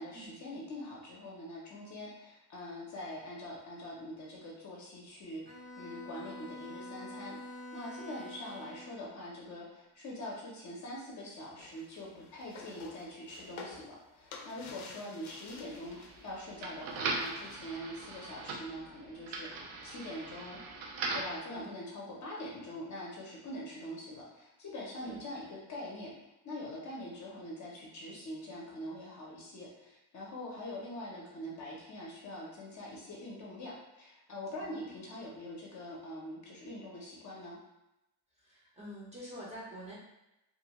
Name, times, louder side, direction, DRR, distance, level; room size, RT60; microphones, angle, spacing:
voice 1, 0.0-20.6 21.1-37.6, left 1 dB, 40° left, -3 dB, 0.6 m, -44 dB
Bowed string instrument, 5.5-9.1, left 1 dB, 55° right, 0.7 m, -46 dB
sound 1, 11.6-16.4 16.7-17.7, left 5 dB, 90° left, 0.5 m, -51 dB
sound 2, 15.5-21.4, right 3 dB, 90° right, 0.6 m, -40 dB
voice 2, 34.6-35.0 38.4-40.0, right 1 dB, 15° right, -7 dB, 0.6 m, -46 dB
2.6 x 2.2 x 2.8 m, 0.92 s
cardioid pair, 145°, 46 cm